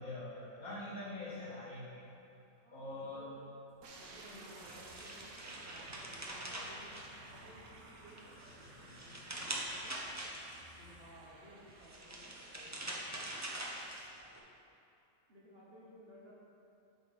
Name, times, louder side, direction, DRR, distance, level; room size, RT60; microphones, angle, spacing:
voice 1, 0.0-2.1 2.7-3.3, left 2 dB, 75° left, -7 dB, 2.2 m, -44 dB
voice 2, 2.6-3.3 4.0-7.0 7.3-9.9 10.8-13.0 15.3-16.3, equal, 45° right, -5 dB, 1.4 m, -58 dB
Squeak, 3.7-11.5, left 2 dB, 55° left, 2.5 m, -64 dB
sound 1, 3.8-14.1, right 3 dB, 90° right, 1.3 m, -55 dB
sound 2, 4.3-7.6 8.1-10.8 11.7-14.4, right 1 dB, 20° right, 0.5 m, -44 dB
7.8 x 5.2 x 5.3 m, 2.7 s
omnidirectional pair, 1.5 m